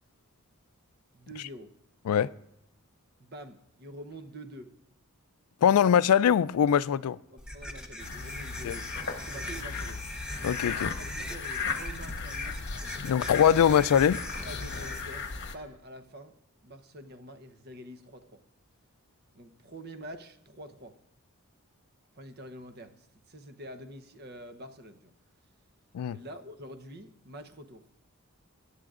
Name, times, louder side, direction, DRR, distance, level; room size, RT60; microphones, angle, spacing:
voice 1, 1.1-1.7 3.2-4.7 7.3-10.0 10.7-12.7 14.4-16.3 16.6-18.4 19.3-21.0 22.1-25.1 26.1-27.8, right 1 dB, 45° right, 0.8 m, -46 dB
voice 2, 5.6-7.2 8.6-8.8 10.4-10.9 13.0-14.2 25.9-26.2, left 8 dB, 85° left, 0.3 m, -22 dB
sound 1, 7.4-15.0, left 1 dB, 5° right, 0.8 m, -40 dB
sound 2, 8.0-15.5, left 5 dB, 50° left, 1.0 m, -37 dB
21.0 x 11.0 x 2.5 m
head